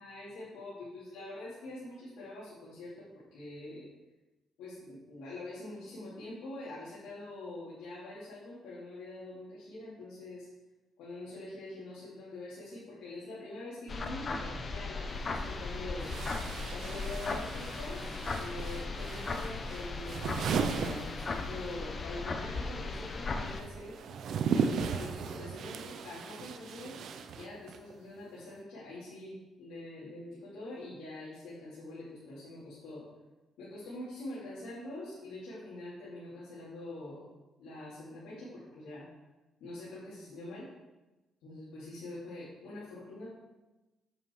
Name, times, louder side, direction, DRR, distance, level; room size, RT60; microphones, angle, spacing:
voice 1, 0.0-3.9 4.6-10.5 11.0-16.1 16.7-23.9 24.5-27.0 27.3-33.0 33.6-37.2 37.6-39.0 39.6-40.7 41.4-43.3, left 2 dB, 85° left, -10 dB, 3.4 m, -44 dB
sound 1, 13.9-23.6, left 3 dB, 40° left, 1.0 m, -37 dB
sound 2, 15.1-15.2 16.0-21.8 22.1-27.9, right 6 dB, 70° right, 0.7 m, -36 dB
8.7 x 7.6 x 4.8 m, 1.1 s
cardioid pair, 90°, 0 cm